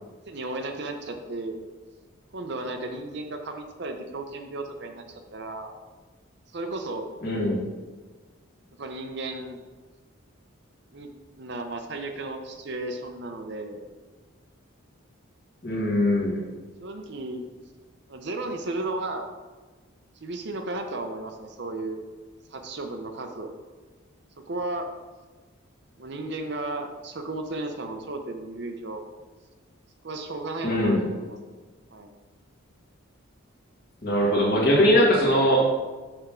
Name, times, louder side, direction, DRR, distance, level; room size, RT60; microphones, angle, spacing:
voice 1, 0.3-1.6 2.3-5.7 6.5-7.1 8.8-9.6 10.9-11.1 11.4-13.8 16.8-17.4 18.1-19.2 20.2-22.0 22.5-23.5 24.5-24.9 26.0-29.0 30.0-31.4 31.9-32.1, right 2 dB, 55° right, 5 dB, 0.6 m, -34 dB
voice 2, 7.2-7.6 15.6-16.4 30.6-31.0 34.0-35.7, equal, 45° left, -4 dB, 1.9 m, -21 dB
6.5 x 3.6 x 6.0 m, 1.3 s
head